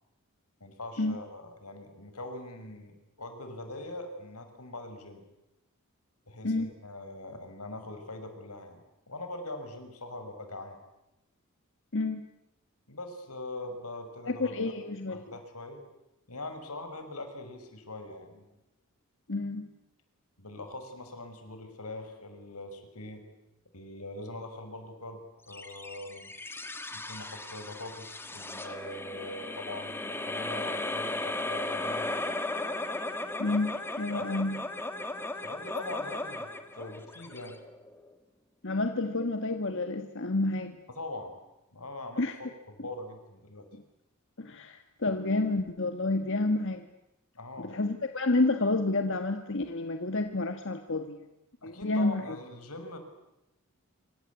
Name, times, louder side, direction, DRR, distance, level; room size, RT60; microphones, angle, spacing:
voice 1, 0.6-5.2 6.3-10.8 12.9-14.5 14.8-15.8 16.3-18.5 20.4-23.2 23.7-26.3 26.9-32.1 34.2-34.3 35.3-37.6 40.9-41.4 41.7-42.2 42.8-43.7 47.3-47.8 51.6-53.0, left 2 dB, 90° left, 7 dB, 5.6 m, -42 dB
voice 2, 11.9-12.2 14.3-15.2 19.3-19.7 33.4-34.6 38.6-40.8 42.2-42.4 44.4-46.9 47.6-51.2 51.6-52.3, left 2 dB, 60° left, 7 dB, 1.6 m, -29 dB
sound 1, 25.5-38.1, left 2 dB, 10° left, 1.9 m, -36 dB
26.5 x 25.0 x 8.4 m, 0.92 s
head